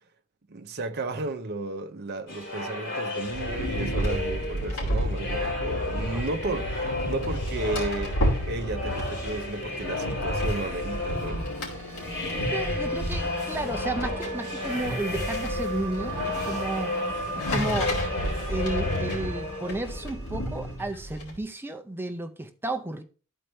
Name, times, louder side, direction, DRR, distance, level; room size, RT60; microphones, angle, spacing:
voice 1, 0.5-11.4, right 2 dB, 50° right, 0.7 m, -33 dB
sound 1, 2.3-20.1, left 2 dB, 55° left, 3.1 m, -33 dB
sound 2, 3.2-21.4, equal, 75° left, 2.6 m, -32 dB
sound 3, 8.1-20.8, right 2 dB, 10° left, 2.7 m, -40 dB
voice 2, 12.5-16.9 17.4-17.9 18.5-23.0, right 2 dB, 10° right, 0.6 m, -32 dB
11.5 x 4.4 x 3.1 m
head